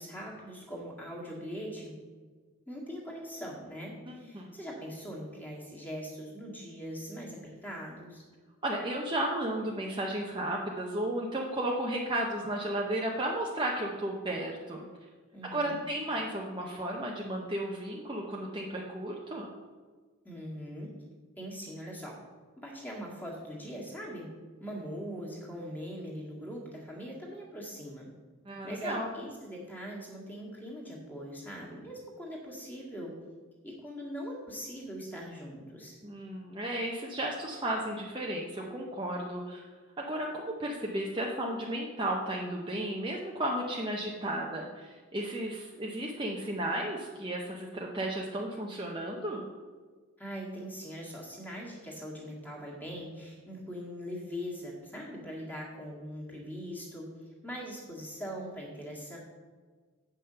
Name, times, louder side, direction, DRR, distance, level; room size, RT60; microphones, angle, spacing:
voice 1, 0.0-1.9 2.7-8.2 15.3-15.8 20.2-20.9 21.4-22.2 22.6-24.3 24.6-28.1 28.6-33.2 33.6-36.0 50.2-57.1 57.4-59.2, equal, 10° left, -4 dB, 1.9 m, -41 dB
voice 2, 8.6-14.8 15.5-19.5 28.5-29.1 36.0-39.6 40.0-49.4, right 1 dB, 20° right, -2 dB, 0.7 m, -34 dB
8.2 x 5.7 x 6.7 m, 1.5 s
head